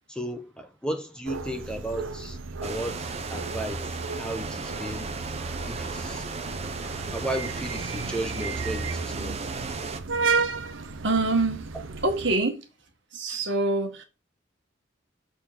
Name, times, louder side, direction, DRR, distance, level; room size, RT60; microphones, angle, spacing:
voice 1, 0.1-5.1 5.7-6.3 7.1-9.4, right 1 dB, 5° left, 0.9 m, -34 dB
sound 1, 1.2-12.4, right 4 dB, 85° right, 0.8 m, -33 dB
sound 2, 2.6-10.0, right 4 dB, 35° right, 0.8 m, -36 dB
voice 2, 10.8-11.7 12.0-12.7 13.1-14.0, right 2 dB, 65° right, 1.7 m, -25 dB
6.9 x 4.1 x 5.9 m
head